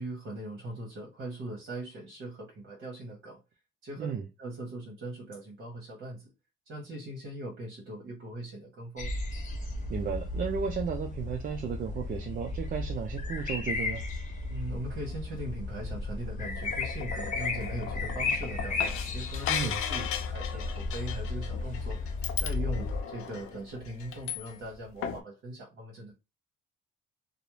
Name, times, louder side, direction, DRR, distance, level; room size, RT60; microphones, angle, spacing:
voice 1, 0.0-3.4 3.8-4.1 4.4-6.2 6.7-9.1 14.5-22.1 22.4-26.1, right 1 dB, 65° right, 1.0 m, -40 dB
sound 1, 9.0-23.0, left 3 dB, 35° left, 0.8 m, -34 dB
voice 2, 9.9-14.0 19.5-19.8, right 6 dB, 45° right, 0.4 m, -34 dB
sound 2, 16.4-24.8 25.0-25.2, left 8 dB, 85° left, 0.4 m, -37 dB
2.4 x 2.0 x 3.0 m
cardioid pair, 95°, 21 cm